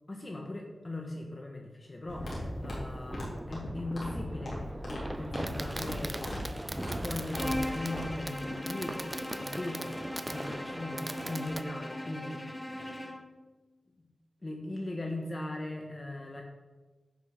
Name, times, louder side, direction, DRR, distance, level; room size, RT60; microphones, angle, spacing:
voice 1, 0.1-4.6 4.8-6.4 6.7-13.1 14.0-14.1 14.4-16.4, left 2 dB, 35° left, 1 dB, 1.3 m, -39 dB
sound 1, 2.1-8.0, left 1 dB, 70° left, 3.4 m, -38 dB
Fireworks, 2.1-11.6, right 1 dB, 20° right, 0.6 m, -41 dB
Bowed string instrument, 7.3-13.3, left 1 dB, 15° left, 0.9 m, -39 dB
9.4 x 5.5 x 6.5 m, 1.2 s
cardioid pair, 55°, 0 cm